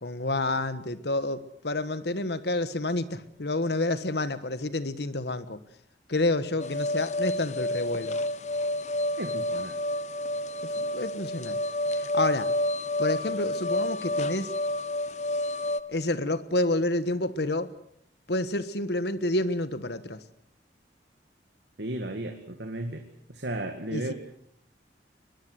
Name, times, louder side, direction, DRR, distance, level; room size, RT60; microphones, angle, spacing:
voice 1, 0.0-5.6 6.1-8.2 10.6-11.6 11.9-12.5 13.0-14.5 15.9-17.7 18.3-20.2 23.9-24.1, left 2 dB, 65° left, 13 dB, 1.4 m, -29 dB
sound 1, 6.6-15.8, left 1 dB, 40° left, 1.1 m, -29 dB
voice 2, 9.2-9.8 21.8-23.0 23.3-24.1, right 1 dB, 70° right, 5 dB, 2.2 m, -34 dB
22.5 x 21.5 x 8.1 m, 0.69 s
head